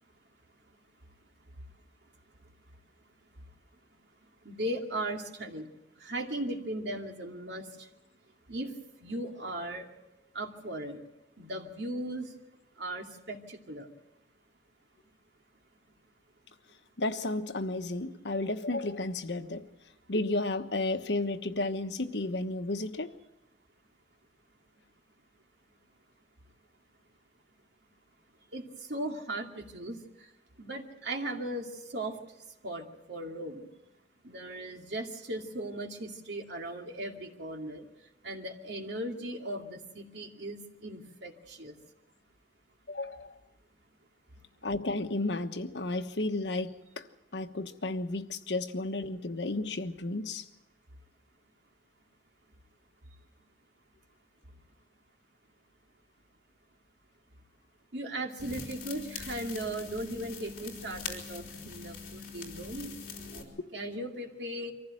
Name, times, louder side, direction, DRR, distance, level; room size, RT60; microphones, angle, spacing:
voice 1, 4.4-5.7 6.0-7.7 8.5-8.7 9.0-9.9 10.3-11.0 11.4-12.3 12.8-13.9 28.5-28.6 28.9-30.0 30.6-32.1 32.6-33.7 34.2-37.8 38.2-41.7 57.9-62.9 63.7-64.7, right 1 dB, 80° right, 2 dB, 2.5 m, -37 dB
voice 2, 17.0-19.6 20.1-23.1 42.9-43.4 44.6-47.0 47.3-50.4, left 2 dB, 85° left, 7 dB, 1.2 m, -32 dB
sound 1, 58.4-63.4, left 5 dB, 50° left, 3.6 m, -43 dB
24.5 x 15.5 x 7.8 m, 0.94 s
head